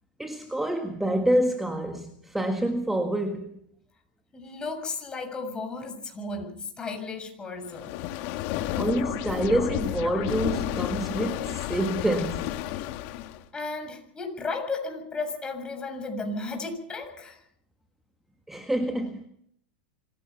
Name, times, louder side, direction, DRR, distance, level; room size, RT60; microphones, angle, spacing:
voice 1, 0.2-3.6 8.7-12.5 18.5-19.3, right 1 dB, 5° right, 1.7 m, -27 dB
voice 2, 4.3-8.0 13.5-17.4, left 3 dB, 15° left, 6.9 m, -34 dB
sound 1, 7.7-13.4, left 14 dB, 55° left, 1.8 m, -31 dB
26.0 x 17.0 x 5.9 m
hypercardioid pair, 120°, 5 cm